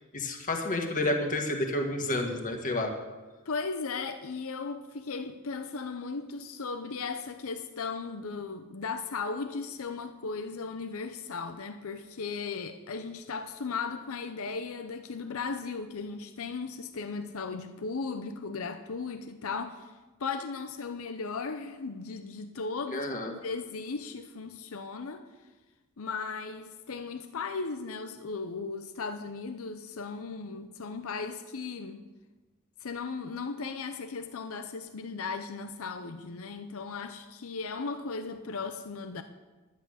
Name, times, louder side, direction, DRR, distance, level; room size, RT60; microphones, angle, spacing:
voice 1, 0.1-2.9 22.9-23.3, left 1 dB, 35° left, 1.7 m, -30 dB
voice 2, 3.5-19.9 20.2-25.3 26.0-32.0 32.8-39.2, left 4 dB, 65° left, 0.7 m, -36 dB
11.0 x 10.5 x 6.4 m
head